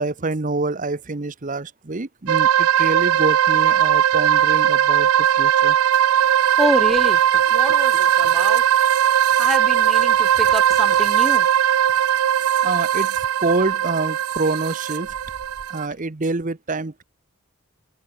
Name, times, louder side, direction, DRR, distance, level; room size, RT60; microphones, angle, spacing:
voice 1, 0.0-5.8 12.4-15.1 15.7-17.0, right 3 dB, 35° right, 0.8 m, -26 dB
sound 1, 2.3-15.9, right 10 dB, 70° right, 0.4 m, -18 dB
sound 2, 6.3-11.6 11.9-14.7 15.0-16.1, left 1 dB, 80° left, 7.4 m, -53 dB
voice 2, 6.6-7.2 7.5-8.7 9.4-11.5, equal, ahead, 1.0 m, -26 dB
sound 3, 6.9-7.6 10.5-11.2 12.8-12.9, left 2 dB, 50° left, 3.9 m, -43 dB
head